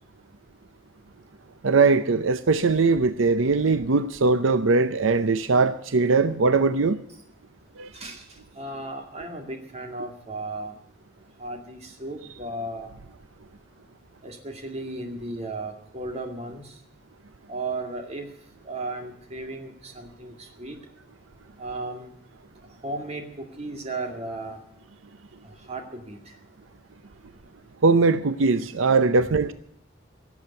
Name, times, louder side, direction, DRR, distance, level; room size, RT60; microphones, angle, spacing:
voice 1, 1.6-7.0 7.8-7.9 27.8-29.5, right 4 dB, 85° right, 0.6 m, -20 dB
voice 2, 7.9-10.8 11.4-13.0 14.2-16.8 17.5-18.3 18.6-20.8 21.6-22.1 22.8-24.6 25.4-26.4, right 2 dB, 35° right, 2.2 m, -35 dB
17.0 x 7.2 x 9.4 m
head